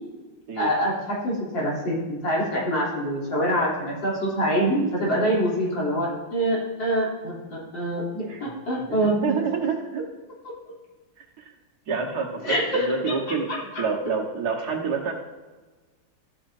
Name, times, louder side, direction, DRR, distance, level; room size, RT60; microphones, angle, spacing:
voice 1, 0.6-9.3 12.4-12.9 13.5-13.6, equal, 80° left, -6 dB, 4.0 m, -25 dB
voice 2, 8.8-10.0 11.4-11.5 11.9-15.1, right 5 dB, 60° right, 0 dB, 1.8 m, -28 dB
14.0 x 8.7 x 2.7 m, 1.3 s
omnidirectional pair, 2.0 m